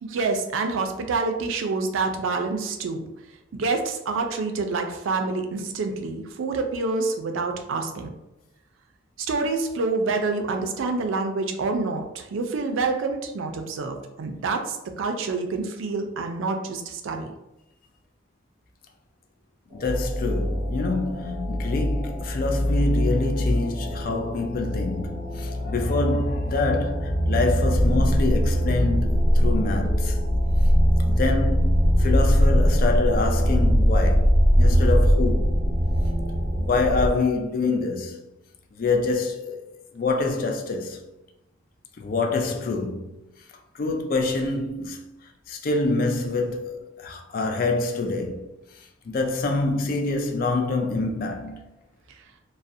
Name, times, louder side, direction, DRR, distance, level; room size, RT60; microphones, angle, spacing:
voice 1, 0.0-3.1 3.5-8.1 9.3-17.3, right 3 dB, 90° right, 0.4 m, -27 dB
voice 2, 19.7-30.2 31.0-35.6 36.6-38.2 38.7-39.6 39.9-41.0 42.0-43.2 43.7-45.0 45.5-48.5 48.7-51.7, left 3 dB, 45° left, 0.3 m, -26 dB
sound 1, 19.7-37.1, equal, 30° right, 0.6 m, -22 dB
2.4 x 2.0 x 2.6 m
head